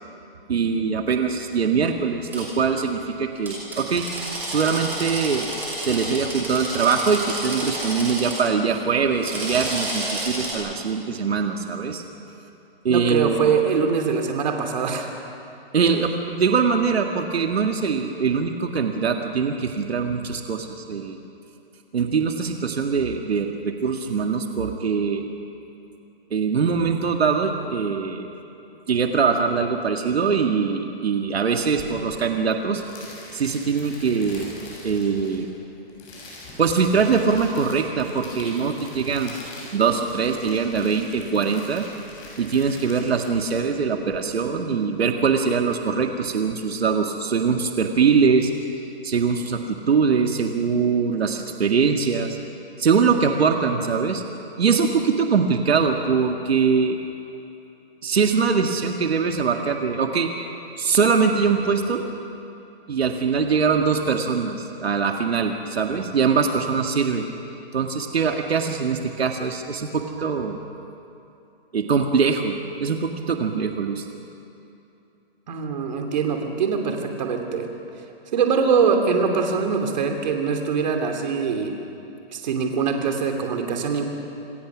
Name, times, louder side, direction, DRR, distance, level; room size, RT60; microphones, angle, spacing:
voice 1, 0.5-4.1 4.5-5.5 5.8-12.0 12.8-13.6 15.7-21.2 21.9-25.3 26.3-28.3 28.9-32.8 33.3-34.5 34.8-35.5 36.6-39.3 39.7-41.9 42.4-52.4 52.8-54.2 54.6-57.0 58.0-60.3 60.8-62.0 62.9-67.3 67.7-70.6 71.7-74.1, right 5 dB, 80° right, 4 dB, 1.8 m, -22 dB
Drill, 2.3-2.4 3.5-8.4 9.1-10.5, right 1 dB, 5° right, 6.0 m, -30 dB
voice 2, 12.9-15.1 75.5-77.7 78.3-81.7 82.3-84.0, right 5 dB, 45° right, 3 dB, 2.9 m, -23 dB
sound 1, 31.6-44.2, left 2 dB, 25° left, 7.1 m, -43 dB
27.0 x 20.0 x 6.2 m, 2.9 s
hypercardioid pair, 165°, 31 cm